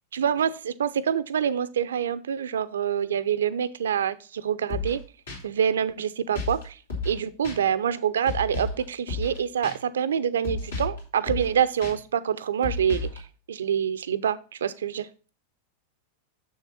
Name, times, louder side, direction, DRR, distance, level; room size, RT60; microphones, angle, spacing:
voice 1, 0.1-5.0 5.4-6.8 7.0-15.1, right 8 dB, 65° right, 0.5 m, -26 dB
sound 1, 4.7-5.0 5.3-5.4 6.4-6.6 6.9-7.2 7.4-7.6 8.3-8.8 9.1-9.4 9.6-9.7 10.4-11.0 11.3-11.5 11.8-11.9 12.6-13.2, left 3 dB, 70° left, 3.1 m, -32 dB
7.2 x 6.5 x 4.1 m
figure-of-eight pair, 90°, 0 cm